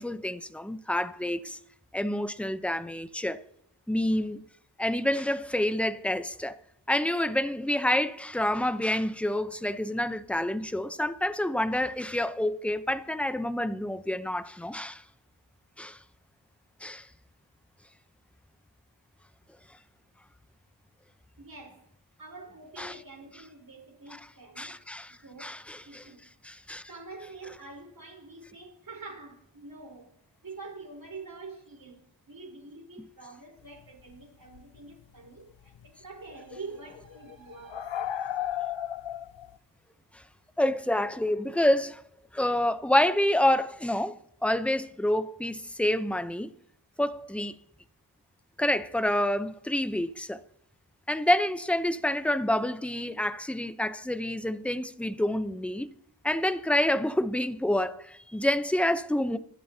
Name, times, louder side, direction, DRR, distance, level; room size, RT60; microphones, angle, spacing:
voice 1, 0.0-1.6 1.9-3.4 3.9-4.5 4.8-6.6 6.9-15.0 15.8-16.0 16.8-17.1 22.8-22.9 24.6-25.1 25.4-26.0 26.4-26.9 40.1-40.2 40.6-42.0 42.3-46.5 47.0-47.6 48.6-50.4 51.1-55.9 56.2-59.4, left 1 dB, 5° left, 0.7 m, -28 dB
voice 2, 21.4-21.9 22.2-24.8 25.2-26.6 26.9-30.1 30.4-38.7, right 3 dB, 45° right, 4.4 m, -46 dB
sound 1, 34.1-34.2 34.6-34.8 35.7-35.9 36.3-39.6, left 11 dB, 75° left, 0.6 m, -34 dB
25.5 x 12.5 x 2.9 m
wide cardioid pair, 95°, 47 cm